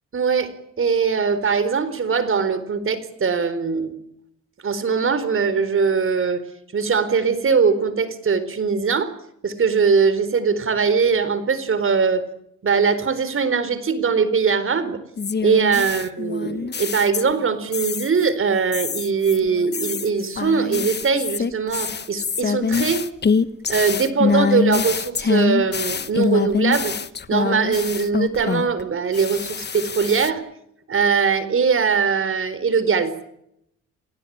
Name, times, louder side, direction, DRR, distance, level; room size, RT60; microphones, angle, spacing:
voice 1, 0.1-3.9 4.6-6.4 6.7-9.1 9.4-12.2 12.6-15.0 15.4-23.0 23.7-26.9 27.3-30.4 30.9-33.1, right 5 dB, 45° right, 13 dB, 4.4 m, -21 dB
sound 1, 15.2-17.5 17.7-18.3 18.7-28.8 29.1-30.3, left 5 dB, 35° left, 1.3 m, -24 dB
29.5 x 18.5 x 8.9 m, 0.77 s
cardioid pair, 90°, 30 cm